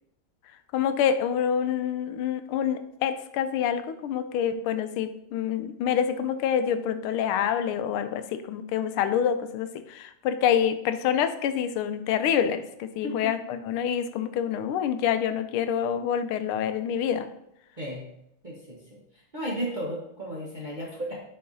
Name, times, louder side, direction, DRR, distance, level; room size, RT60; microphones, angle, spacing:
voice 1, 0.7-17.3, left 8 dB, 85° left, 10 dB, 1.5 m, -27 dB
voice 2, 18.4-19.0 19.3-21.2, equal, 35° right, -5 dB, 0.8 m, -34 dB
7.6 x 5.7 x 2.7 m, 0.79 s
omnidirectional pair, 2.3 m